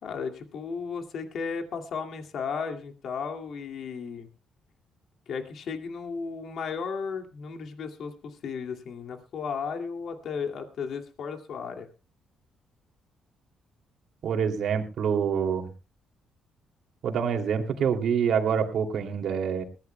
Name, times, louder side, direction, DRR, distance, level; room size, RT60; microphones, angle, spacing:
voice 1, 0.0-4.3 5.3-11.9, left 5 dB, 65° left, 5 dB, 2.2 m, -34 dB
voice 2, 14.2-15.7 17.0-19.6, right 7 dB, 70° right, 4 dB, 2.6 m, -26 dB
21.0 x 16.0 x 2.2 m, 0.31 s
cardioid pair, 90°, 0 cm